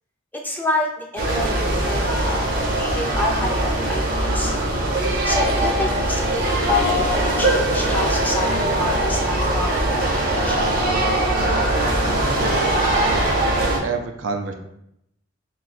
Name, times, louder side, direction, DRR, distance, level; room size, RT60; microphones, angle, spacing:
voice 1, 0.3-4.5 5.3-10.7, left 2 dB, 10° left, 0 dB, 0.4 m, -28 dB
sound 1, 1.2-13.8, right 1 dB, 50° right, 0.6 m, -21 dB
voice 2, 12.3-13.3 13.6-14.5, right 4 dB, 85° right, 4 dB, 0.5 m, -29 dB
2.6 x 2.3 x 4.0 m, 0.77 s
head